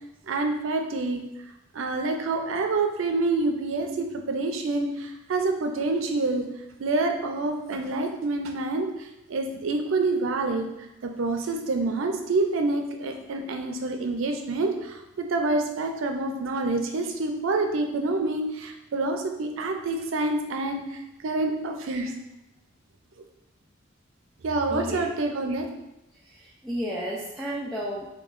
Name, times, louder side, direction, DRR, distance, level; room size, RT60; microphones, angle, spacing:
voice 1, 0.3-1.2 1.7-6.5 6.8-10.6 11.0-20.8 21.2-22.1 24.4-25.7, right 3 dB, 80° right, 4 dB, 0.4 m, -27 dB
voice 2, 24.7-25.1 26.2-28.1, equal, ahead, -7 dB, 0.3 m, -33 dB
3.0 x 2.3 x 3.7 m, 0.94 s
head